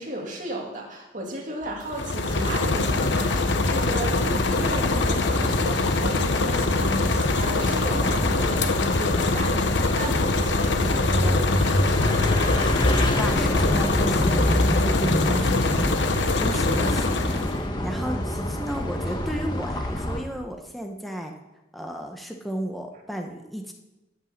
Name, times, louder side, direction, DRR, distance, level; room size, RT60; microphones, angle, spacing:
voice 1, 0.0-11.8 16.5-16.6, right 1 dB, 45° right, 0 dB, 2.4 m, -34 dB
sound 1, 1.6-16.6, equal, 65° right, 4.0 m, -47 dB
sound 2, 1.8-17.6, left 3 dB, 75° left, 0.9 m, -24 dB
sound 3, 2.3-20.2, left 1 dB, 25° left, 1.2 m, -27 dB
voice 2, 13.1-16.0 16.4-17.6 17.8-21.3 21.7-23.7, equal, ahead, 2 dB, 1.0 m, -33 dB
13.5 x 5.5 x 7.3 m, 0.97 s
head